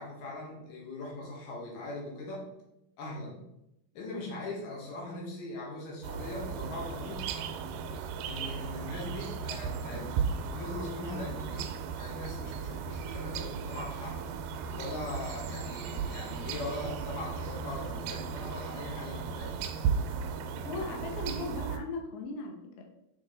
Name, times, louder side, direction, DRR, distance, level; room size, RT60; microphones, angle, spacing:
voice 1, 0.0-2.5 3.0-3.4 3.9-7.2 8.3-10.1 10.5-11.7 11.9-14.3 14.7-19.6, left 2 dB, 85° left, -3 dB, 3.2 m, -40 dB
sound 1, 6.0-21.8, right 6 dB, 90° right, 2.2 m, -36 dB
voice 2, 20.6-22.8, left 3 dB, 70° left, 1 dB, 1.6 m, -38 dB
6.9 x 4.6 x 3.9 m, 0.86 s
omnidirectional pair, 3.8 m